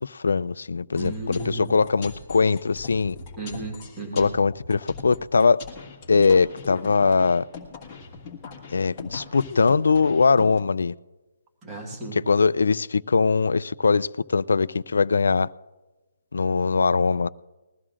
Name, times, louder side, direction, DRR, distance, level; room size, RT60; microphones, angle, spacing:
voice 1, 0.0-3.2 4.2-5.6 6.1-7.5 8.7-10.9 12.3-15.5 16.3-17.3, left 4 dB, 85° left, 0.3 m, -21 dB
sound 1, 0.9-10.6, left 4 dB, 15° left, 1.5 m, -41 dB
voice 2, 0.9-1.9 3.4-4.3 11.6-12.2, right 2 dB, 10° right, 1.4 m, -34 dB
21.0 x 14.5 x 2.5 m
hypercardioid pair, 175°, 0 cm